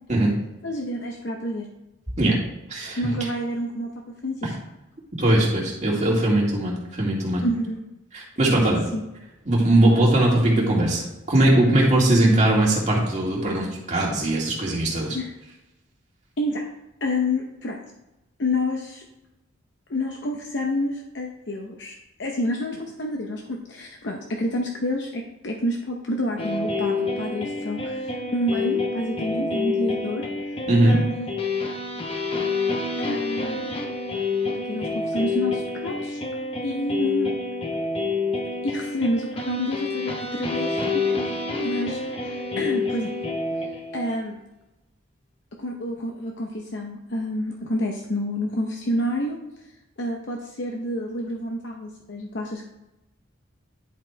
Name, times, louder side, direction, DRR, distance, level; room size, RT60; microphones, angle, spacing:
voice 1, 0.6-1.7 3.0-4.6 7.4-7.8 8.6-8.7 8.9-9.0 15.1-15.3 16.4-16.6 17.0-17.8 18.4-19.0 19.9-30.2 30.8-31.3 33.0-33.6 34.7-36.2 36.6-37.3 38.6-43.1 43.9-44.4 45.6-49.4 50.0-52.6, left 1 dB, 60° left, 1 dB, 0.8 m, -28 dB
voice 2, 2.7-3.1 5.2-7.4 8.1-8.8 9.5-15.2 30.7-31.0, right 1 dB, 35° right, -4 dB, 2.3 m, -20 dB
sound 1, 26.4-44.2, left 3 dB, 30° left, 0.8 m, -28 dB
10.0 x 4.2 x 4.5 m, 0.96 s
head